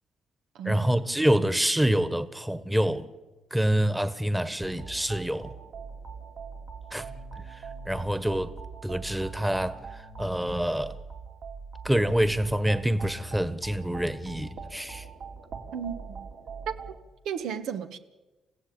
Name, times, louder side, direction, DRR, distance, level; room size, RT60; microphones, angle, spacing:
voice 1, 0.6-3.1 3.5-5.5 6.9-7.0 7.9-8.5 8.8-10.9 11.8-15.0, right 1 dB, 5° right, 1.4 m, -26 dB
sound 1, 4.6-17.0, right 4 dB, 65° right, 3.3 m, -42 dB
voice 2, 15.7-16.3 16.7-16.8 17.2-18.0, right 8 dB, 85° right, 1.4 m, -33 dB
29.0 x 15.5 x 8.8 m
cardioid pair, 90°, 0 cm